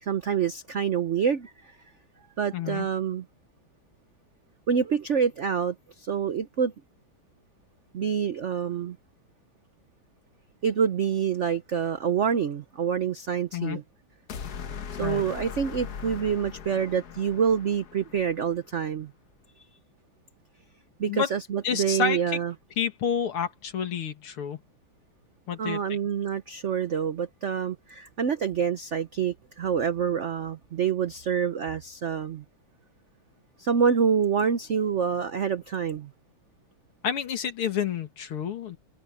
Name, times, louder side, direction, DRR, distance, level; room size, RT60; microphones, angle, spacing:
voice 1, 0.0-1.7 2.4-3.2 4.7-6.7 7.9-9.0 10.6-13.8 15.0-19.1 21.0-22.5 25.6-32.4 33.6-36.1, right 7 dB, 75° right, 0.6 m, -27 dB
voice 2, 2.5-2.9 13.5-13.8 15.0-15.2 21.1-21.3 21.6-22.2 22.8-24.6 25.5-26.0 37.0-38.8, left 7 dB, 85° left, 2.8 m, -29 dB
sound 1, 14.3-18.6, left 7 dB, 55° left, 1.5 m, -39 dB
omnidirectional pair, 2.3 m